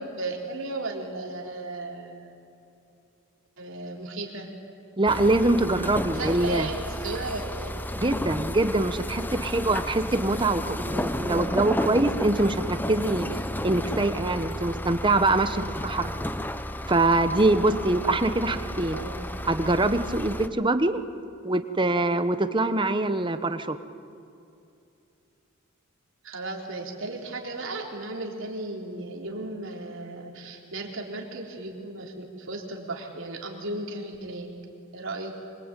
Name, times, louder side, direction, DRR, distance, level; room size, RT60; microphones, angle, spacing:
voice 1, 0.0-2.3 3.6-4.5 6.1-7.7 18.9-19.3 26.2-34.5 34.9-35.3, right 2 dB, 65° right, 0 dB, 4.0 m, -35 dB
voice 2, 5.0-6.7 8.0-13.3 13.6-16.1 16.9-19.0 19.4-21.0 21.4-23.8, right 2 dB, 25° right, 10 dB, 1.1 m, -24 dB
sound 1, 5.1-20.5, left 1 dB, 10° left, 0.8 m, -32 dB
25.5 x 25.0 x 9.1 m, 2.6 s
head